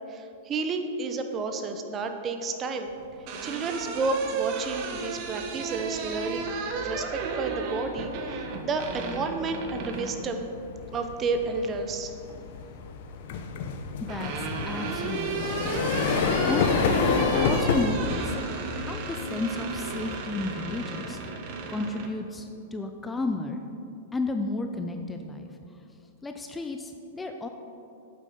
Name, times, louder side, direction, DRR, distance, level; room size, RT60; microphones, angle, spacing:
voice 1, 0.1-2.9 3.4-6.5 6.7-10.5 10.9-12.1, right 4 dB, 25° right, 6 dB, 0.9 m, -31 dB
sound 1, 3.0-10.2 11.7-12.4 13.6-22.1, right 5 dB, 45° right, 1.2 m, -34 dB
sound 2, 4.0-4.3 4.7-21.4, left 5 dB, 60° left, 0.8 m, -30 dB
voice 2, 14.1-16.1 16.5-16.8 17.3-18.3 18.8-21.2 21.7-23.6 24.1-25.5 26.2-27.5, left 3 dB, 10° left, 5 dB, 0.6 m, -32 dB
9.1 x 7.5 x 5.2 m, 2.7 s
hypercardioid pair, 125°, 0 cm